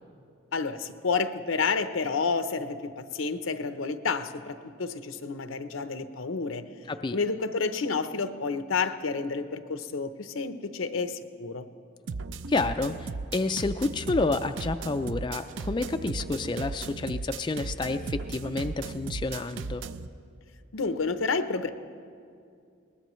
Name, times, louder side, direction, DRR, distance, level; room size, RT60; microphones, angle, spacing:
voice 1, 0.5-6.6 7.1-11.6 20.7-21.7, left 4 dB, 90° left, 10 dB, 0.7 m, -30 dB
voice 2, 6.9-7.2 12.5-19.8, left 3 dB, 25° left, 8 dB, 0.3 m, -29 dB
sound 1, 12.1-20.1, right 4 dB, 70° right, 0.5 m, -36 dB
21.0 x 19.0 x 3.1 m, 2.4 s
head